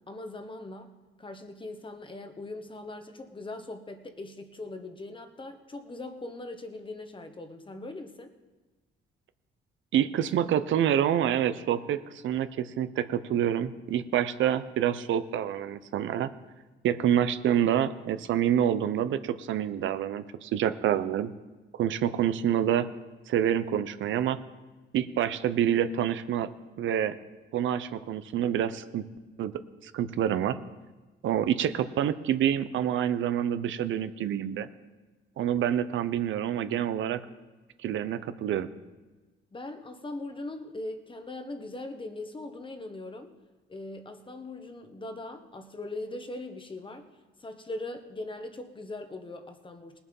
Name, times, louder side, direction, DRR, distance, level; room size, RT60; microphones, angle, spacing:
voice 1, 0.1-0.9 1.2-8.3 39.5-43.3 43.7-47.1 47.4-50.0, left 2 dB, 25° left, 7 dB, 1.3 m, -40 dB
voice 2, 9.9-16.3 16.8-21.3 21.8-22.9 23.3-24.4 24.9-26.5 26.8-27.2 27.5-29.1 29.4-29.5 29.8-30.6 31.2-34.7 35.4-37.2 37.8-38.7, right 10 dB, 75° right, 12 dB, 0.7 m, -27 dB
19.0 x 7.1 x 5.4 m, 1.2 s
cardioid pair, 90°, 20 cm